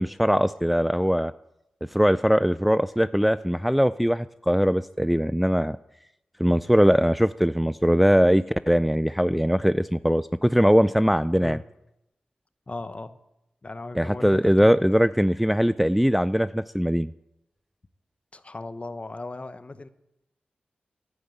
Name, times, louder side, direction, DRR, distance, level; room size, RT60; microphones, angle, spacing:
voice 1, 0.0-1.3 1.9-5.8 6.4-11.6 13.9-17.1, equal, ahead, 15 dB, 0.4 m, -21 dB
voice 2, 12.7-13.2 13.6-14.8 18.3-19.9, left 2 dB, 40° left, 12 dB, 1.0 m, -37 dB
11.0 x 9.5 x 9.2 m, 0.87 s
cardioid pair, 45°, 3 cm